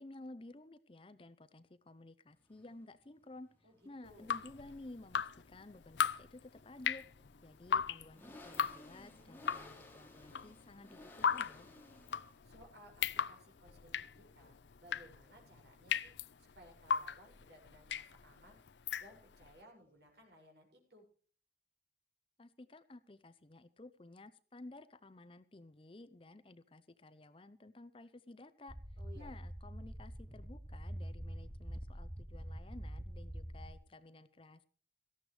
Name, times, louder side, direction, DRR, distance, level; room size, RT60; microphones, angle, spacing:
voice 1, 0.0-11.7 22.4-28.8 29.2-34.6, left 2 dB, 30° left, 14 dB, 0.6 m, -54 dB
sound 1, 2.3-20.3, left 1 dB, 10° left, 2.6 m, -61 dB
Drip, 4.1-19.5, left 7 dB, 80° left, 0.6 m, -38 dB
voice 2, 12.4-18.6 19.0-21.1 29.0-29.3, equal, 65° right, 1 dB, 6.2 m, -60 dB
sound 2, 28.7-33.7, equal, 5° right, 0.8 m, -45 dB
17.5 x 14.0 x 3.2 m, 0.42 s
head